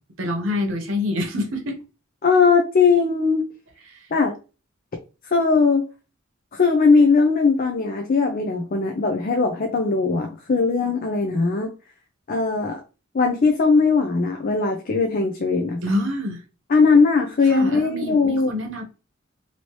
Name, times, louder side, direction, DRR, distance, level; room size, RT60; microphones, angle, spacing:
voice 1, 0.2-1.8 3.9-4.0 15.8-16.4 17.5-18.8, left 1 dB, 70° right, 0.8 m, -26 dB
voice 2, 2.2-3.4 4.1-4.3 5.3-5.9 6.5-11.7 12.3-12.8 13.1-15.8 16.7-18.5, left 4 dB, 45° left, 0.5 m, -19 dB
3.0 x 2.8 x 3.0 m
head